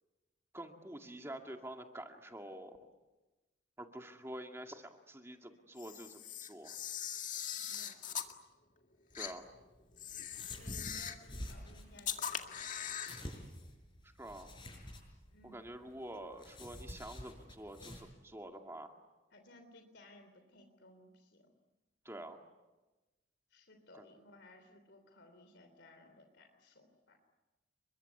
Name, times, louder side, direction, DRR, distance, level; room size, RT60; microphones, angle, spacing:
voice 1, 0.5-2.8 3.8-6.8 9.1-9.5 14.2-14.5 15.4-18.9 22.0-22.4 23.9-24.0, right 1 dB, 15° right, 3 dB, 2.1 m, -47 dB
Camera, 5.8-8.3 9.1-9.3 10.0-11.3 12.0-13.2, left 8 dB, 40° left, 2.1 m, -41 dB
voice 2, 7.5-8.3 10.6-13.2 15.3-15.6 19.3-21.5 23.5-27.2, left 2 dB, 70° left, 5 dB, 3.3 m, -60 dB
sound 1, 9.1-18.0, left 1 dB, 25° left, 6.9 m, -49 dB
30.0 x 23.5 x 8.4 m, 1.1 s
head